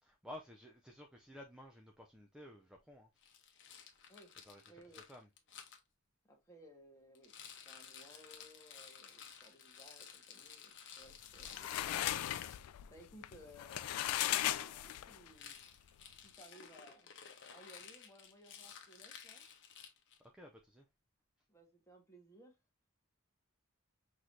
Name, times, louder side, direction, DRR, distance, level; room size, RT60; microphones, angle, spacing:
voice 1, 0.0-3.2 3.8-4.1 4.4-5.3 11.6-12.0 20.2-20.9, left 1 dB, 5° right, 0.5 m, -54 dB
Rattle, 3.2-5.8 7.2-12.6 15.3-20.3, left 7 dB, 55° left, 1.0 m, -54 dB
voice 2, 4.7-5.0 6.2-7.3 7.6-11.9 12.9-15.6 16.2-17.1 17.5-19.4 21.5-22.6, equal, 15° left, 1.4 m, -60 dB
sound 1, 11.1-15.3, left 13 dB, 85° left, 0.3 m, -37 dB
6.1 x 3.1 x 2.7 m
head